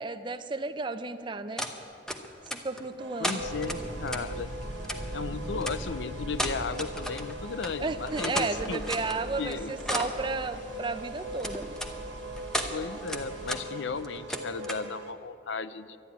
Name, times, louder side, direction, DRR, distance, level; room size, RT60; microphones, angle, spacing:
voice 1, 0.0-1.6 2.5-3.4 7.8-11.7, right 3 dB, 25° right, 10 dB, 0.5 m, -33 dB
sound 1, 1.6-1.7 2.1-2.8 3.2-4.2 4.8-5.0 5.6-5.8 6.3-7.3 7.6-7.7 8.0-9.2 9.5-10.2 11.4-11.9 12.4-12.7 13.1-13.6 13.9-14.9, equal, 5° left, 0.9 m, -34 dB
sound 2, 3.0-15.1, right 1 dB, 75° right, 1.4 m, -41 dB
voice 2, 3.2-4.6 5.1-9.1 9.4-9.7 12.7-16.0, left 4 dB, 75° left, 14 dB, 0.5 m, -35 dB
sound 3, 3.4-13.6, equal, 45° left, 1.8 m, -42 dB
12.0 x 11.0 x 9.2 m, 2.7 s
head